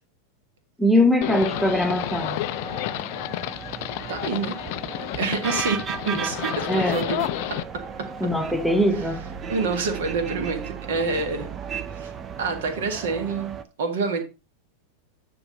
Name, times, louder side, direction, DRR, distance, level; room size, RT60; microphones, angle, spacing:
voice 1, 0.8-2.4 6.1-6.2 6.7-7.0 8.2-9.2, left 1 dB, ahead, 1.0 m, -21 dB
Livestock farm animals working animals, 1.2-7.6, left 17 dB, 45° left, 0.4 m, -30 dB
sound 1, 1.4-13.6, right 6 dB, 25° right, 0.7 m, -35 dB
voice 2, 4.1-4.6 5.1-7.3 7.7-8.1 9.5-11.5 12.0-12.1 12.4-14.2, right 4 dB, 55° right, 1.8 m, -27 dB
9.7 x 3.9 x 5.1 m
figure-of-eight pair, 90°, 0 cm